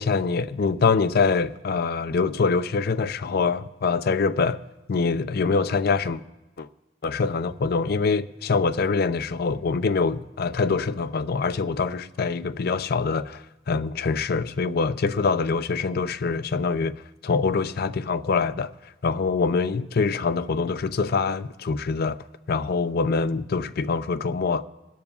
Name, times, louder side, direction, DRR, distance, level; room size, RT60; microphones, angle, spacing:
voice 1, 0.0-4.6 4.9-6.2 6.6-6.7 7.0-18.7 19.0-22.2 22.5-24.6, left 4 dB, 55° left, 0.5 m, -24 dB
24.5 x 12.0 x 2.4 m
head